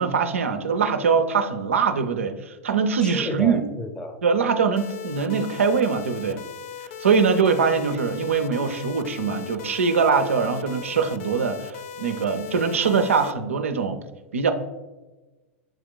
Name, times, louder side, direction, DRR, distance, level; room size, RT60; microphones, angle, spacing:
voice 1, 0.0-3.7 4.2-6.4 7.0-14.0 14.3-14.5, right 5 dB, 90° right, 6 dB, 0.4 m, -22 dB
voice 2, 3.0-4.2, left 1 dB, 10° left, 6 dB, 0.5 m, -32 dB
sound 1, 4.8-13.3, left 8 dB, 70° left, 0.3 m, -38 dB
7.5 x 2.9 x 2.2 m, 1.2 s
hypercardioid pair, 100°, 7 cm